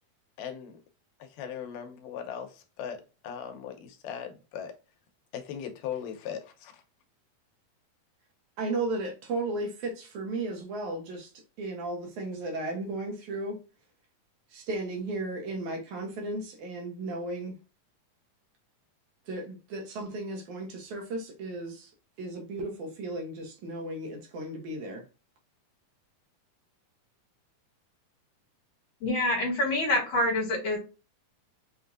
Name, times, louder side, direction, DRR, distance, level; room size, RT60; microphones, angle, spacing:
voice 1, 0.4-0.8 1.2-4.7 5.3-6.8, left 8 dB, 85° left, 2.4 m, -39 dB
voice 2, 8.6-11.3 11.6-13.6 14.5-17.6 19.3-21.9 22.2-25.0, right 2 dB, 70° right, 2.3 m, -35 dB
voice 3, 29.0-30.8, left 1 dB, 55° left, 2.7 m, -26 dB
5.8 x 2.6 x 2.3 m
omnidirectional pair, 3.7 m